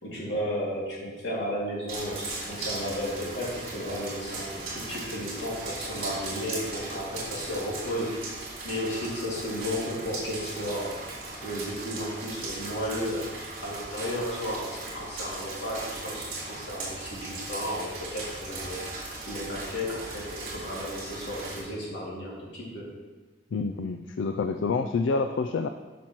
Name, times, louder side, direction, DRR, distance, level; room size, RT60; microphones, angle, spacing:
voice 1, 0.0-8.2 8.6-11.0 11.4-13.3 13.6-18.8 19.3-22.9, equal, 70° left, -5 dB, 2.5 m, -33 dB
sound 1, 1.9-21.6, right 2 dB, 50° right, 2.8 m, -38 dB
voice 2, 23.5-25.7, left 4 dB, 85° left, 7 dB, 0.4 m, -27 dB
10.5 x 6.0 x 3.1 m, 1.2 s
head